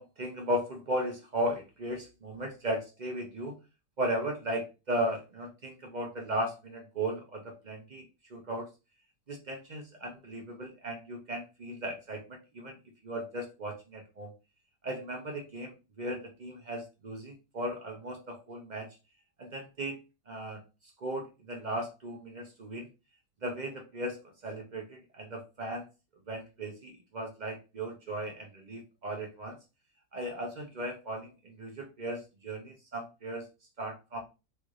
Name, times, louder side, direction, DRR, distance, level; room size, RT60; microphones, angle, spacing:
voice 1, 0.0-3.6 4.0-8.7 9.3-12.8 13.0-14.3 14.8-19.0 19.4-20.6 21.0-22.9 23.4-24.2 24.4-25.9 26.3-29.6 30.1-33.5 33.8-34.2, right 1 dB, 50° right, 2 dB, 0.5 m, -36 dB
3.3 x 3.2 x 2.4 m, 0.27 s
omnidirectional pair, 1.7 m